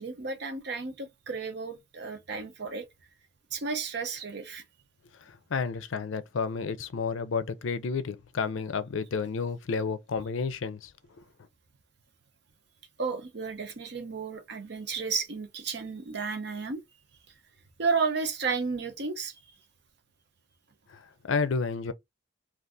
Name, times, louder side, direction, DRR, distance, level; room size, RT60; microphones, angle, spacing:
voice 1, 0.0-2.9 3.5-4.6 13.0-16.8 17.8-19.3, right 5 dB, 55° right, 0.7 m, -32 dB
voice 2, 5.2-10.9 11.2-11.3 20.9-21.9, left 5 dB, 75° left, 0.5 m, -31 dB
2.6 x 2.4 x 3.5 m
head